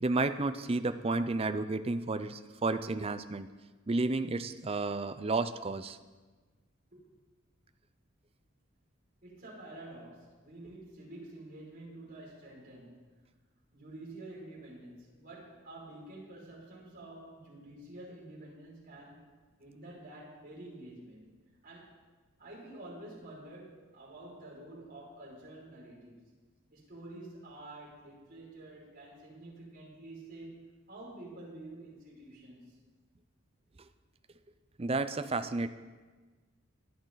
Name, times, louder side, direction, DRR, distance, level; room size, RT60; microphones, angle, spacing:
voice 1, 0.0-3.5 3.9-6.0 34.8-35.7, right 3 dB, 30° right, 10 dB, 0.5 m, -31 dB
voice 2, 9.2-13.2 13.7-19.3 19.6-22.0 22.4-26.3 26.7-32.8, right 2 dB, 45° right, -6 dB, 5.6 m, -49 dB
24.5 x 9.0 x 4.0 m, 1.3 s
head